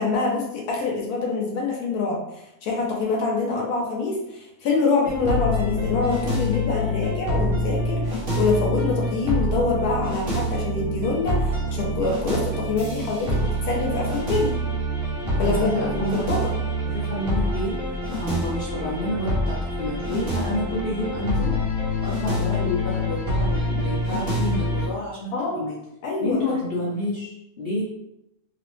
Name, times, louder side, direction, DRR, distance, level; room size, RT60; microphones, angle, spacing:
voice 1, 0.0-14.6 15.4-16.5 25.3-25.7 26.0-26.4, left 3 dB, 85° left, -1 dB, 1.1 m, -25 dB
sound 1, 5.0-24.9, equal, 45° right, 0.9 m, -26 dB
voice 2, 15.4-16.4 16.8-17.8 18.2-21.5 22.0-25.8 26.2-27.8, left 1 dB, 60° left, -6 dB, 0.6 m, -29 dB
2.8 x 2.0 x 3.0 m, 0.84 s
omnidirectional pair, 1.6 m